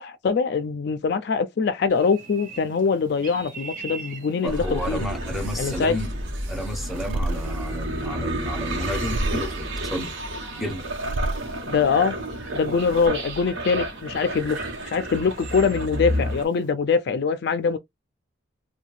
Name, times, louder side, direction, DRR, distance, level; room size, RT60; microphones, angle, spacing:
voice 1, 0.0-5.0 5.6-6.0 11.7-12.2 12.5-14.6 14.9-17.8, left 5 dB, 55° left, 0.4 m, -23 dB
sound 1, 1.9-16.7, right 4 dB, 45° right, 0.7 m, -45 dB
voice 2, 4.4-6.1 6.5-10.1 10.6-10.8, equal, ahead, 0.6 m, -31 dB
sound 2, 4.5-16.5, right 1 dB, 65° right, 1.0 m, -31 dB
sound 3, 6.1-13.1, right 2 dB, 85° right, 0.5 m, -34 dB
2.7 x 2.2 x 3.1 m
head